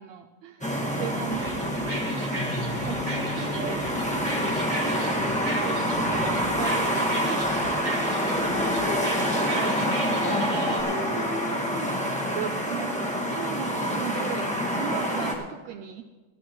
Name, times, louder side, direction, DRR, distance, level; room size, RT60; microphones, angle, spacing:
voice 1, 0.0-1.8 2.7-3.3 3.6-3.9 4.8-7.5 12.3-16.0, right 9 dB, 80° right, 5 dB, 1.6 m, -37 dB
sound 1, 0.6-15.3, equal, 10° left, 0.4 m, -27 dB
sound 2, 1.3-10.8, right 2 dB, 30° right, 0.7 m, -37 dB
voice 2, 8.6-9.7 10.0-12.4, left 2 dB, 70° left, 6 dB, 2.2 m, -37 dB
19.5 x 13.5 x 3.1 m, 1.3 s
omnidirectional pair, 3.6 m